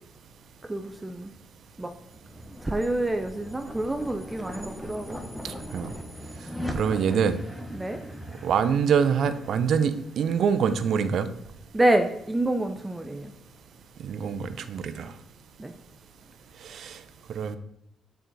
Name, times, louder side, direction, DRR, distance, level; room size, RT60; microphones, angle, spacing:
voice 1, 0.7-1.3 1.8-1.9 2.6-5.2 7.7-8.0 11.7-13.3 15.6-15.7, right 1 dB, 15° right, 6 dB, 0.5 m, -27 dB
sound 1, 1.6-12.2, equal, 5° left, 0.9 m, -40 dB
voice 2, 5.4-5.9 6.7-7.4 8.4-11.3 14.0-15.1 16.6-17.0 17.3-17.6, right 7 dB, 65° right, 11 dB, 0.5 m, -25 dB
6.7 x 4.6 x 4.0 m, 0.78 s
cardioid pair, 90°, 0 cm